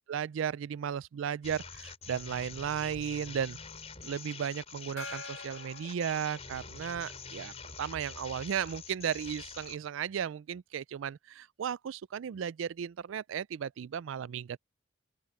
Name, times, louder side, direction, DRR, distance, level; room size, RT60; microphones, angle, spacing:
voice 1, 0.1-3.6 4.0-14.6, right 8 dB, 65° right, 0.3 m, -35 dB
sound 1, 1.4-9.8, left 5 dB, 30° left, 3.7 m, -46 dB
Gong, 5.0-7.0, left 2 dB, 75° left, 1.7 m, -46 dB
open air
head